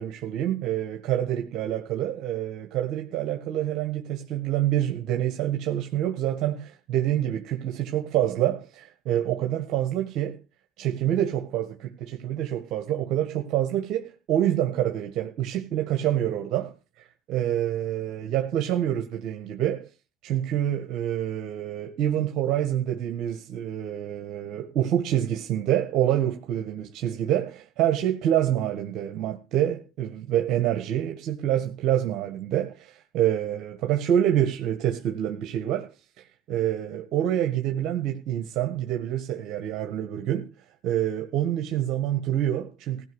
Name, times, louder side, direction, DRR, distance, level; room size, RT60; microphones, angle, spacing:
voice 1, 0.0-10.4 10.8-19.9 20.2-35.9 36.2-40.5 40.8-43.0, right 11 dB, 65° right, 1.7 m, -27 dB
16.0 x 5.9 x 6.4 m
supercardioid pair, 90°, 0 cm